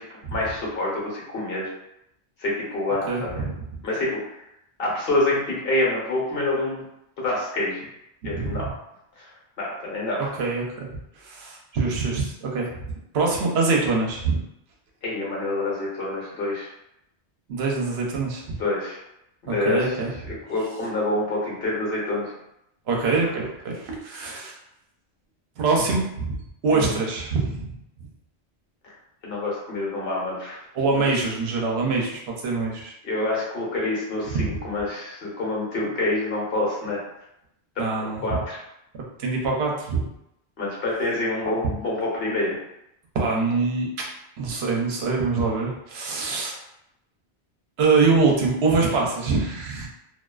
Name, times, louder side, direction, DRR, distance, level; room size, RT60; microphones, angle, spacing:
voice 1, 0.0-1.7 2.4-3.4 3.8-4.2 4.8-6.8 7.2-7.8 8.2-8.7 9.2-9.3 9.6-10.3 15.0-16.7 18.6-19.0 19.4-19.8 20.2-22.3 26.7-26.9 29.2-30.6 30.9-31.1 33.0-37.0 38.0-38.6 40.6-42.6, left 2 dB, 60° left, -4 dB, 1.0 m, -27 dB
voice 2, 3.1-3.6 8.3-8.6 10.4-10.9 11.2-12.8 13.1-14.4 17.5-18.4 19.5-20.1 22.9-24.5 25.6-26.4 26.6-27.8 30.7-32.9 34.3-34.5 37.8-38.4 39.2-40.1 43.1-44.0 44.4-46.6 47.8-49.9, right 4 dB, 70° right, -1 dB, 0.8 m, -24 dB
2.4 x 2.3 x 2.2 m, 0.82 s
omnidirectional pair, 1.1 m